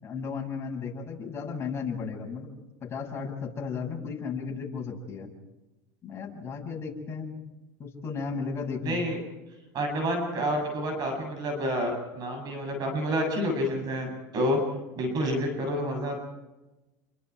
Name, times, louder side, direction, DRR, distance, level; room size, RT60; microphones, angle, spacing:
voice 1, 0.0-2.5 2.8-5.3 6.0-7.4 7.8-9.0, left 5 dB, 25° left, 0 dB, 7.5 m, -34 dB
voice 2, 8.8-9.2 9.7-14.6 15.0-16.2, equal, 45° right, 3 dB, 8.0 m, -29 dB
29.5 x 23.5 x 4.8 m, 1.1 s
supercardioid pair, 110°, 10 cm